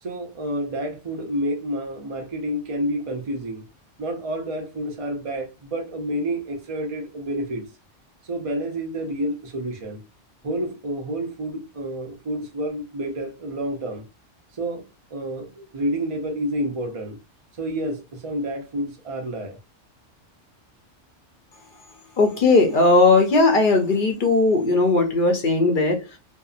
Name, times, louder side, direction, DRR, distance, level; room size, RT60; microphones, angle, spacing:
voice 1, 0.0-3.7 4.0-7.6 8.3-10.0 10.4-14.0 14.5-14.8 15.1-17.2 17.6-19.6, right 1 dB, 45° right, 0.4 m, -29 dB
voice 2, 22.2-26.0, left 3 dB, 55° left, 0.6 m, -18 dB
2.7 x 2.0 x 2.3 m
omnidirectional pair, 1.2 m